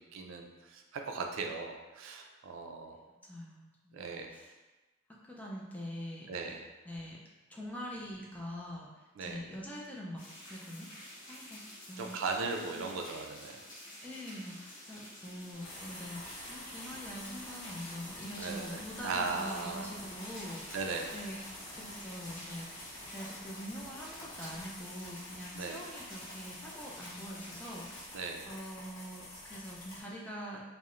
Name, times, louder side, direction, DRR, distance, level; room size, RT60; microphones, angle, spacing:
voice 1, 0.0-3.0 3.9-4.3 6.3-6.6 9.2-9.4 12.0-13.6 18.4-19.9 20.7-21.1 25.5-25.8 28.1-28.5, right 4 dB, 80° right, 3 dB, 0.3 m, -38 dB
voice 2, 3.1-4.5 5.2-6.3 6.9-7.2 7.5-11.6 11.9-12.2 12.5-12.9 14.0-16.2 16.5-20.6 21.1-21.4 21.7-28.1 28.5-30.6, equal, 10° left, -4 dB, 0.3 m, -44 dB
sound 1, 10.2-28.1, left 1 dB, 45° left, 1.0 m, -50 dB
Mechanisms, 15.5-25.1, right 1 dB, 15° right, 0.8 m, -54 dB
sound 2, 15.6-30.0, left 1 dB, 90° left, 0.8 m, -48 dB
2.4 x 2.0 x 2.9 m, 1.2 s
head